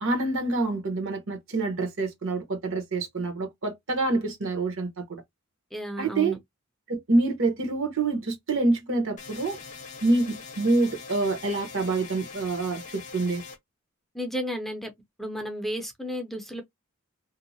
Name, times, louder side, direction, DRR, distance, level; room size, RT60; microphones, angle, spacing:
voice 1, 0.0-5.2 6.0-6.3 6.9-9.6 10.0-13.4, right 2 dB, 65° right, 1.0 m, -26 dB
voice 2, 5.7-6.4 14.1-14.9 15.2-16.6, equal, ahead, 0.5 m, -32 dB
sound 1, 9.2-13.6, left 5 dB, 35° left, 0.7 m, -43 dB
2.7 x 2.0 x 2.7 m
head